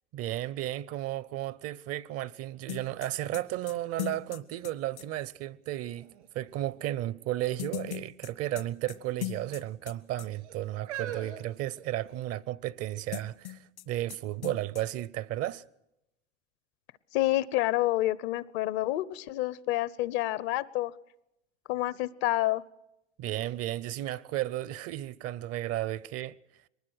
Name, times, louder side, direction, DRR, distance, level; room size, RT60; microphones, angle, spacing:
voice 1, 0.1-6.1 6.3-13.6 13.9-15.6 23.2-26.4, right 14 dB, 45° right, 0.7 m, -34 dB
sound 1, 2.7-5.1 7.6-9.9 10.2-10.3 13.1-13.8 14.1-14.2 14.4-14.8, left 17 dB, 80° left, 1.8 m, -38 dB
sound 2, 3.3-3.4 3.8-5.4 6.0-6.5 7.3-7.7 7.9-8.1 9.0-9.6 10.3-12.4 13.1-13.2, right 10 dB, 80° right, 3.2 m, -44 dB
voice 2, 17.1-20.9 21.7-22.6, left 16 dB, 60° left, 0.8 m, -28 dB
23.0 x 20.0 x 6.3 m
hypercardioid pair, 85°, 35 cm